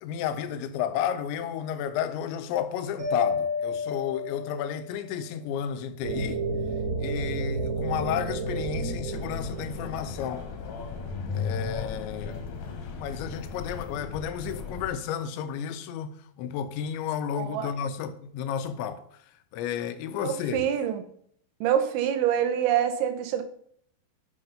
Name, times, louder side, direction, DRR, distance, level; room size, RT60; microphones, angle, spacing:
voice 1, 0.0-6.4 7.0-10.5 11.3-19.0 19.5-20.6, left 8 dB, 85° left, 3.0 m, -32 dB
Mallet percussion, 3.0-5.0, left 5 dB, 20° right, 2.8 m, -31 dB
sound 1, 6.0-11.1, right 3 dB, 55° right, 2.2 m, -32 dB
sound 2, 9.1-14.9, left 5 dB, 60° left, 2.4 m, -36 dB
voice 2, 17.4-17.7 20.2-21.0 21.6-23.4, right 9 dB, 85° right, 3.3 m, -26 dB
8.0 x 5.8 x 5.5 m
omnidirectional pair, 5.2 m